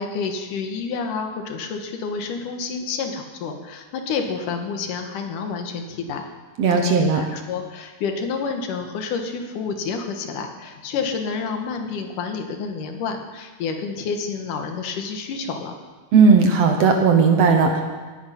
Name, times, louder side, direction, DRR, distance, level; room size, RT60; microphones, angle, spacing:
voice 1, 0.0-6.2 6.7-15.7, left 5 dB, 75° left, 5 dB, 2.7 m, -29 dB
voice 2, 6.6-7.2 16.1-17.8, right 5 dB, 65° right, 4 dB, 1.9 m, -16 dB
18.5 x 9.1 x 5.7 m, 1.4 s
omnidirectional pair, 3.7 m